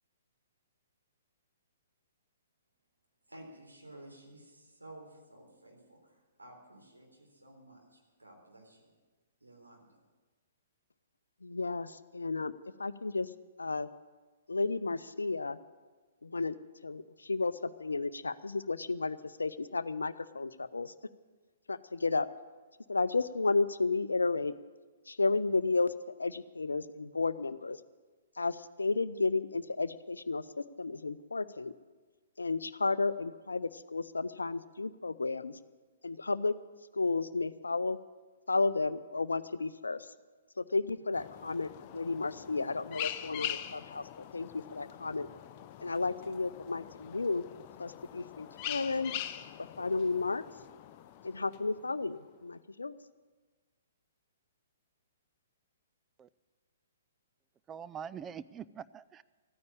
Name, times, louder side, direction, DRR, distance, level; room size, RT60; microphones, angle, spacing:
voice 1, 3.3-8.9 9.4-10.0, right 1 dB, 85° right, 0 dB, 3.7 m, -54 dB
voice 2, 11.4-12.5 12.8-13.3 13.6-13.9 14.5-15.6 16.2-16.6 16.8-20.9 21.7-22.3 22.9-24.5 25.1-25.9 26.2-27.8 28.4-31.7 32.4-35.6 36.0-36.5 36.9-38.0 38.5-40.1 40.6-45.3 45.8-47.4 47.8-49.1 49.8-50.4 51.2-52.9, left 3 dB, 75° left, 14 dB, 0.5 m, -32 dB
sound 1, 41.1-52.1, left 11 dB, 35° left, 0.6 m, -43 dB
voice 3, 57.7-59.2, right 8 dB, 15° right, 15 dB, 0.3 m, -43 dB
13.5 x 9.5 x 8.9 m, 1.3 s
figure-of-eight pair, 120°, 0 cm